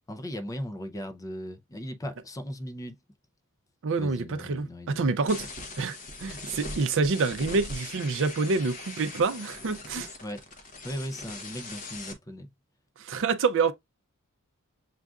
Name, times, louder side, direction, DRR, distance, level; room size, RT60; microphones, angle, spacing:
voice 1, 0.1-3.0 4.0-5.2 10.2-10.4 10.8-12.5, equal, 15° left, 0.5 m, -38 dB
voice 2, 3.8-5.4 5.8-10.1 13.0-13.7, right 4 dB, 60° right, 0.5 m, -27 dB
sound 1, 5.3-12.1, left 2 dB, 35° left, 0.9 m, -41 dB
7.3 x 2.5 x 2.3 m
head